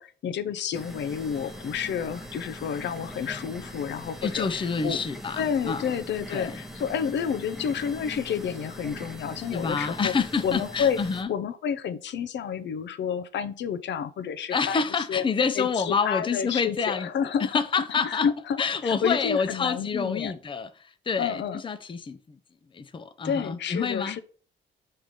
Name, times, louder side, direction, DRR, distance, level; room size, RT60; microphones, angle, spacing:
voice 1, 0.0-5.0 5.4-10.1 10.4-11.0 11.3-14.8 15.1-15.2 15.6-17.6 17.9-20.3 21.2-21.6 23.2-24.2, left 7 dB, 65° left, 0.7 m, -30 dB
sound 1, 0.7-11.2, equal, ahead, 1.0 m, -41 dB
voice 2, 4.2-5.9 6.3-6.6 9.5-11.3 14.5-17.1 17.4-18.3 18.6-22.4 22.7-24.2, left 5 dB, 25° left, 0.6 m, -28 dB
5.8 x 3.3 x 5.2 m
cardioid pair, 90°, 20 cm